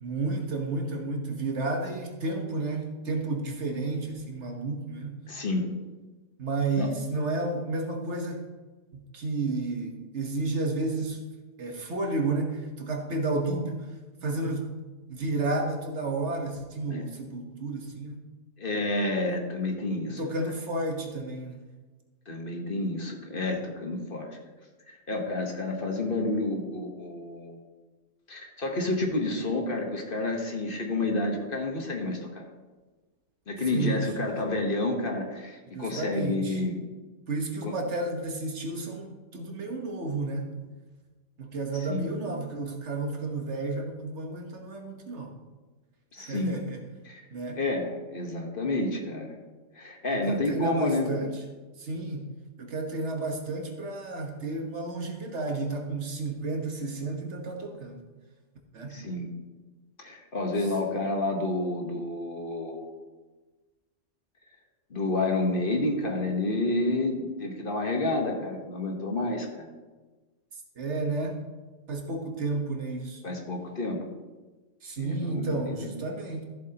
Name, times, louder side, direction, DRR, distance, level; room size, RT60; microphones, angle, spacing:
voice 1, 0.0-5.2 6.4-8.4 8.9-11.2 11.6-13.9 14.2-14.8 15.1-18.2 20.1-21.6 33.7-34.1 35.7-36.6 37.3-40.5 41.4-45.4 46.2-46.8 47.3-47.6 50.1-51.3 51.8-52.3 52.6-58.0 58.7-59.0 70.8-71.4 71.9-73.2 74.8-76.4, right 2 dB, 65° right, 2 dB, 1.5 m, -31 dB
voice 2, 5.3-5.6 6.7-6.9 16.8-17.0 18.6-20.3 22.3-24.4 25.1-27.6 28.3-32.4 33.5-36.8 37.6-37.7 41.7-42.1 46.1-46.6 47.0-47.2 47.5-49.4 49.7-51.1 58.9-59.3 60.0-62.9 64.9-69.7 73.2-74.0 75.0-75.9, left 2 dB, 45° left, 2 dB, 1.4 m, -29 dB
14.0 x 7.6 x 2.9 m, 1.3 s
omnidirectional pair, 1.3 m